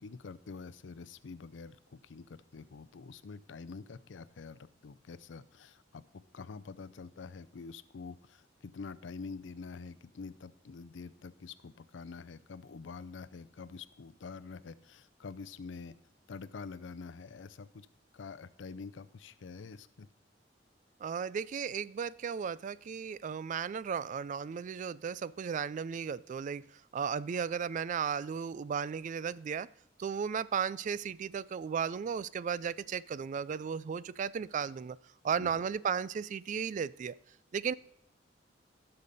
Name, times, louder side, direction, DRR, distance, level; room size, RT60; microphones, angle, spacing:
voice 1, 0.0-6.0 6.3-15.9 16.3-17.9 18.1-20.1 35.3-35.6, left 4 dB, 85° left, 14 dB, 0.5 m, -46 dB
voice 2, 21.0-26.6 26.9-29.7 30.0-35.0 35.2-37.2 37.5-37.7, right 7 dB, 45° right, 19 dB, 0.3 m, -35 dB
17.0 x 6.7 x 4.1 m, 0.76 s
head